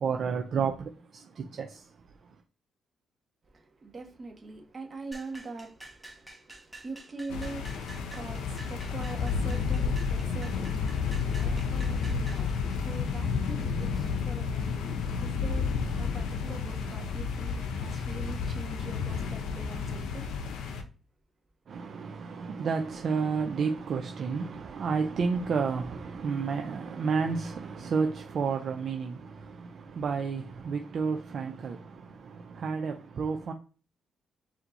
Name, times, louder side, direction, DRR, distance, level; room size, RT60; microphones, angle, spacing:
voice 1, 0.0-1.8 21.7-33.5, right 5 dB, 55° right, 0.5 m, -31 dB
voice 2, 3.5-20.3, right 3 dB, 35° right, 1.4 m, -43 dB
sound 1, 5.1-12.5, right 1 dB, ahead, 1.3 m, -49 dB
sound 2, 7.3-20.8, left 5 dB, 85° left, 0.8 m, -31 dB
4.4 x 2.8 x 3.9 m
cardioid pair, 90°, 0 cm